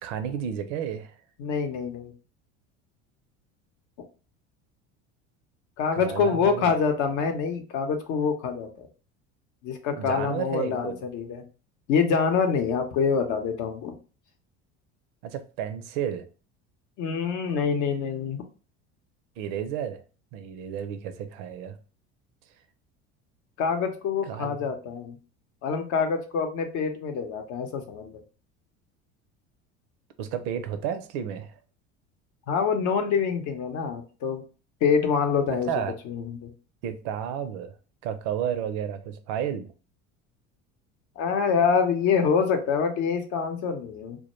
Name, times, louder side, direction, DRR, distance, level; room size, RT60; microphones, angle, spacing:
voice 1, 0.0-1.1 5.9-6.7 9.9-11.0 15.2-16.2 19.4-20.0 20.3-21.8 24.2-24.7 30.2-31.6 35.5-35.9 36.8-37.7 38.0-39.7, right 9 dB, 70° right, 0.5 m, -32 dB
voice 2, 1.4-2.1 5.8-8.9 9.6-11.4 11.9-13.9 17.0-18.4 23.6-25.2 25.6-28.2 32.5-34.4 34.8-36.5 41.2-44.2, left 6 dB, 55° left, 0.7 m, -26 dB
2.2 x 2.1 x 3.0 m
hypercardioid pair, 80°, 35 cm